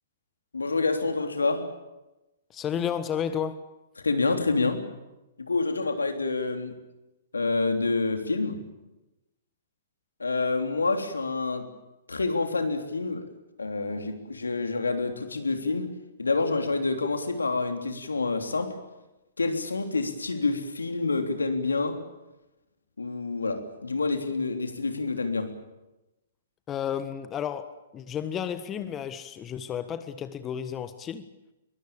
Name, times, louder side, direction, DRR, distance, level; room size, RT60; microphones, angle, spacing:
voice 1, 0.5-1.7 4.0-4.8 5.4-6.8 7.3-8.6 10.2-11.7 12.1-13.3 13.6-15.9 16.2-18.8 19.4-22.0 23.0-25.5, left 3 dB, 85° left, 6 dB, 3.4 m, -27 dB
voice 2, 2.5-3.6 26.7-31.3, left 8 dB, 20° left, 11 dB, 1.4 m, -32 dB
23.0 x 21.5 x 8.8 m, 1.0 s
figure-of-eight pair, 120°, 0 cm